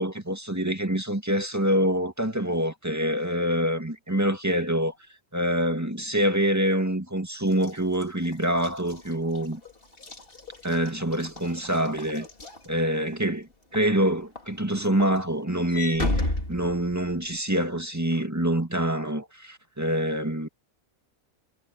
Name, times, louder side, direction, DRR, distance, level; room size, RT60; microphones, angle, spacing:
voice 1, 0.0-4.9 5.3-9.6 10.6-12.3 12.7-20.5, right 1 dB, 10° right, 2.1 m, -26 dB
Walk footsteps / Slam, 7.5-13.2 13.7-14.0 14.4-17.4, left 2 dB, 45° left, 3.3 m, -34 dB
omnidirectional pair, 1.4 m